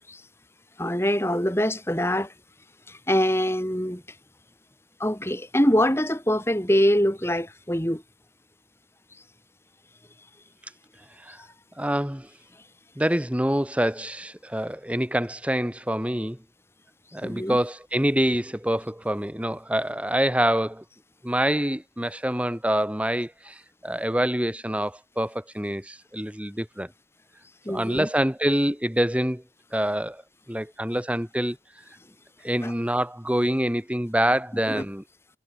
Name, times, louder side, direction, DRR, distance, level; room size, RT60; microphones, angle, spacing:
voice 1, 0.8-2.3 2.9-4.0 5.0-8.0 17.2-17.6 27.6-28.1 32.6-32.7 34.7-34.8, equal, 15° left, 4.8 m, -24 dB
voice 2, 11.8-12.3 13.0-16.4 17.1-20.8 21.2-26.9 27.7-29.4 29.7-30.2 30.5-31.6 32.4-35.0, right 1 dB, 5° right, 1.4 m, -26 dB
head